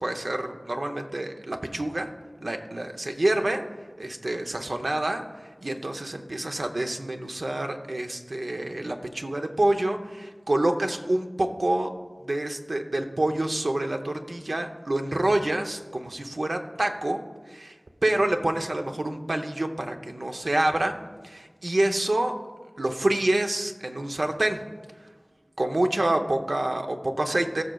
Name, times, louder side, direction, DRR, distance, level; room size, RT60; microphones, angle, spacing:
voice 1, 0.0-2.1 2.4-3.6 4.0-5.2 5.6-11.9 12.2-17.2 17.5-17.7 18.0-21.0 21.2-22.4 22.8-24.6 25.6-27.6, right 1 dB, 85° right, 4 dB, 0.7 m, -27 dB
17.5 x 6.2 x 2.3 m, 1.4 s
wide cardioid pair, 45°, 0 cm